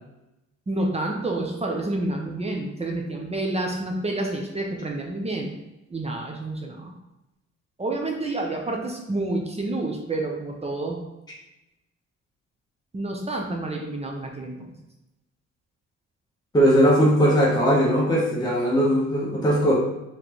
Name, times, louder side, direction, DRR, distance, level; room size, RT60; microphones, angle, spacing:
voice 1, 0.7-5.6 5.9-6.9 7.8-11.0 12.9-14.7, right 2 dB, 20° right, 0 dB, 0.7 m, -29 dB
voice 2, 16.5-19.7, equal, 15° left, -5 dB, 1.0 m, -19 dB
3.9 x 3.3 x 3.0 m, 0.91 s
cardioid pair, 90°, 30 cm